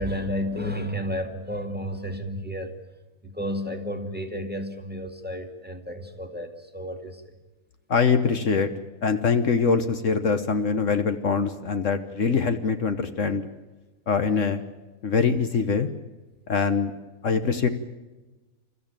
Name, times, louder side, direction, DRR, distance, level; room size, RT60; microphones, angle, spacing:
voice 1, 0.0-2.8 3.2-7.3, equal, 5° right, 5 dB, 2.0 m, -32 dB
voice 2, 7.9-8.7 9.0-13.4 14.1-14.6 15.0-15.9 16.5-16.9 17.2-17.7, left 5 dB, 60° left, 8 dB, 1.4 m, -23 dB
29.0 x 14.0 x 9.0 m, 1.2 s
omnidirectional pair, 1.5 m